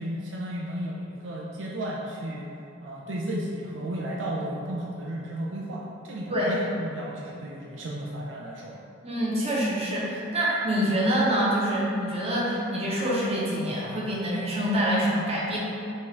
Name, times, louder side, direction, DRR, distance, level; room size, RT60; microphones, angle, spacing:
voice 1, 0.0-2.5 2.8-8.8, right 1 dB, 70° right, -3 dB, 0.4 m, -33 dB
voice 2, 9.0-15.6, equal, 30° right, -6 dB, 0.9 m, -26 dB
5.3 x 2.5 x 3.2 m, 2.7 s
head